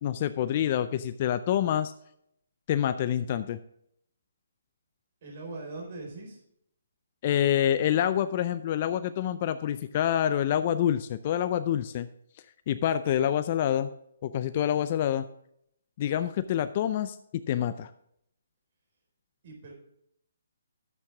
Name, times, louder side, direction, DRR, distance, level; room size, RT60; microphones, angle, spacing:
voice 1, 0.0-1.9 2.7-3.6 7.2-12.1 12.7-13.9 14.2-15.3 16.0-17.9, left 10 dB, 40° left, 12 dB, 0.4 m, -27 dB
voice 2, 5.2-6.4 19.4-19.7, right 3 dB, 50° right, 1 dB, 4.4 m, -40 dB
10.5 x 8.4 x 3.6 m, 0.72 s
hypercardioid pair, 145°, 0 cm